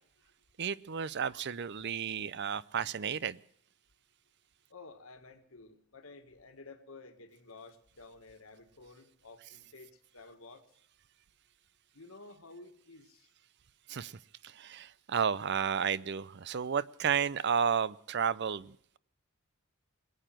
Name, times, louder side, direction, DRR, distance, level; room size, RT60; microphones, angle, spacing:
voice 1, 0.6-3.4 13.9-19.0, right 7 dB, 55° right, 20 dB, 0.5 m, -32 dB
voice 2, 4.7-10.6 11.9-13.3, left 3 dB, 70° left, 6 dB, 1.6 m, -52 dB
21.5 x 9.0 x 7.6 m, 0.66 s
head